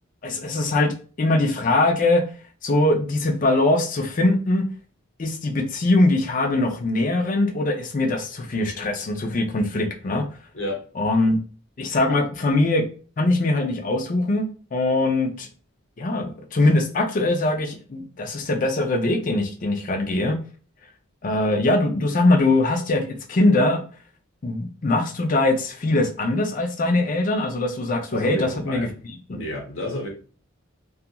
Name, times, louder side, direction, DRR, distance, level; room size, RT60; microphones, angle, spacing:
voice 1, 0.2-2.2 2.6-4.6 5.2-10.2 11.0-11.4 11.8-12.8 13.2-15.5 16.0-20.4 21.2-23.8 24.4-28.9 29.3-29.4, left 2 dB, 40° left, 0.4 m, -22 dB
voice 2, 10.5-10.9 28.1-28.9 29.3-30.1, left 1 dB, 65° left, 0.9 m, -30 dB
2.8 x 2.3 x 2.2 m
head